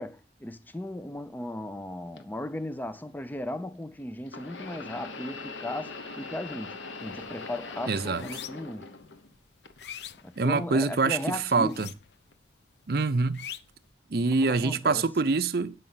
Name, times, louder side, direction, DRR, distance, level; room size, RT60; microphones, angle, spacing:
voice 1, 0.0-8.9 10.2-11.9 14.4-15.1, left 1 dB, 10° left, 0.4 m, -37 dB
sound 1, 2.2-2.3 4.3-9.3 9.6-10.4 11.2-11.3 12.3-12.4, left 3 dB, 90° left, 1.1 m, -41 dB
sound 2, 7.0-7.3 7.7-8.8 9.3-11.0 11.6-12.4 12.6-13.9, left 10 dB, 65° left, 0.5 m, -43 dB
voice 2, 7.9-8.2 10.4-11.9 12.9-13.5 14.1-15.7, right 4 dB, 55° right, 0.6 m, -25 dB
9.0 x 5.4 x 5.5 m
head